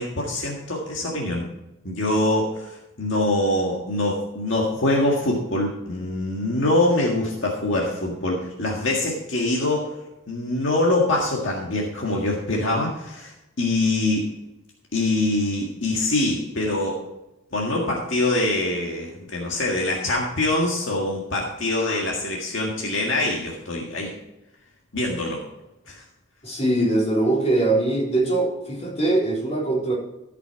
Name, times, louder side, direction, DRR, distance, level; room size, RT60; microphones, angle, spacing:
voice 1, 0.0-1.4 1.8-9.9 10.3-13.3 13.6-14.3 14.9-17.0 17.5-24.1 24.9-25.4 25.9-26.0, left 2 dB, 70° left, -2 dB, 1.8 m, -24 dB
voice 2, 26.4-29.9, right 2 dB, 30° left, -5 dB, 3.9 m, -22 dB
14.0 x 6.0 x 4.6 m, 0.91 s
head